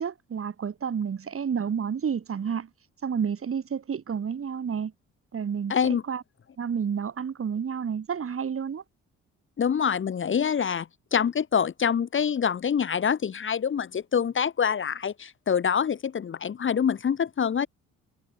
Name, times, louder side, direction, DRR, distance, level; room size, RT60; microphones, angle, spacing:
voice 1, 0.0-2.7 3.0-4.9 5.3-6.2 6.6-8.8, right 7 dB, 45° right, 5.7 m, -30 dB
voice 2, 5.7-6.0 9.6-17.7, left 7 dB, 40° left, 1.2 m, -25 dB
cardioid pair, 90°, 30 cm